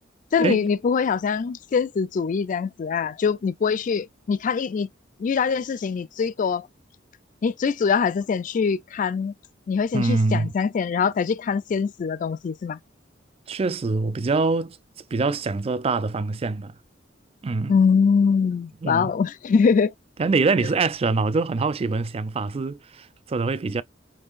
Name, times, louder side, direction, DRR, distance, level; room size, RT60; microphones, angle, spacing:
voice 1, 0.3-4.9 5.2-6.7 7.4-9.3 9.7-12.8 17.7-19.9, left 5 dB, 45° left, 0.3 m, -23 dB
voice 2, 9.9-10.5 13.5-14.8 15.1-16.7 17.4-17.7 18.8-19.1 20.2-23.8, right 3 dB, 30° right, 0.4 m, -24 dB
5.5 x 3.1 x 2.4 m
head